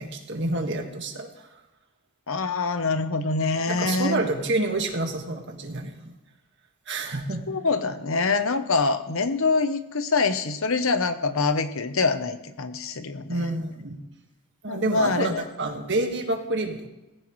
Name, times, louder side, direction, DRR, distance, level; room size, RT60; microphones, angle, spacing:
voice 1, 0.0-1.5 3.7-6.1 6.9-7.4 13.3-14.0 14.6-16.9, right 2 dB, 55° right, 3 dB, 1.8 m, -28 dB
voice 2, 2.3-4.2 7.5-13.5 14.7-15.4, left 3 dB, 65° left, 10 dB, 0.9 m, -25 dB
18.0 x 15.5 x 3.2 m, 1.0 s
head